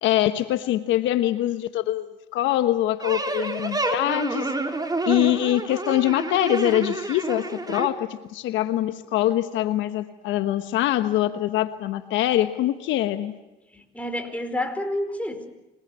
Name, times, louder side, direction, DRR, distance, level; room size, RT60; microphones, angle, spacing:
voice 1, 0.0-2.1 2.3-4.5 5.0-13.4, left 13 dB, 75° left, 10 dB, 1.2 m, -24 dB
sound 1, 3.0-7.9, right 2 dB, 20° right, 4.0 m, -29 dB
voice 2, 13.7-15.5, left 1 dB, 5° left, 5 dB, 4.9 m, -29 dB
27.0 x 20.5 x 8.2 m, 1.0 s
supercardioid pair, 65°, 20 cm